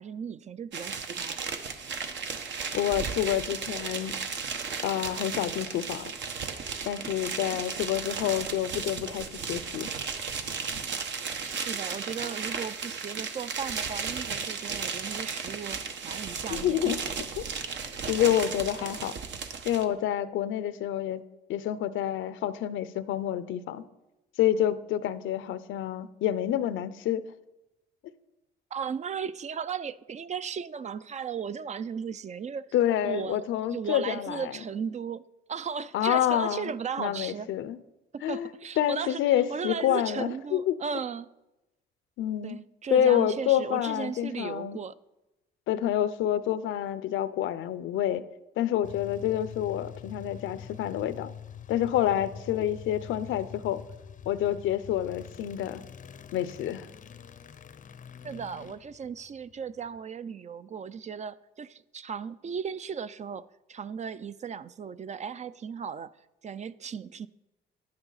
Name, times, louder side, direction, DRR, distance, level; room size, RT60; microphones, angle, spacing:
voice 1, 0.0-1.4 11.4-16.9 18.0-18.1 28.7-32.7 33.0-33.4 33.7-35.2 35.5-37.5 38.1-39.2 39.5-41.3 42.4-44.9 58.2-66.1 66.4-67.3, right 6 dB, 35° right, 0.4 m, -36 dB
sound 1, 0.7-19.9, right 5 dB, 65° right, 1.1 m, -35 dB
voice 2, 2.7-4.2 4.8-6.1 6.8-9.9 16.5-17.0 17.4-17.5 18.1-19.1 19.6-21.2 21.5-23.8 24.4-27.2 32.7-34.5 35.9-36.7 37.0-37.8 38.2-38.5 38.8-40.8 42.2-42.6 42.9-44.8 45.7-48.2 48.6-51.3 51.7-53.8 54.3-55.8 56.3-56.9, left 11 dB, 85° left, 0.6 m, -28 dB
sound 2, 48.8-60.0, left 7 dB, 40° left, 0.6 m, -45 dB
11.0 x 9.7 x 4.0 m
cardioid pair, 90°, 20 cm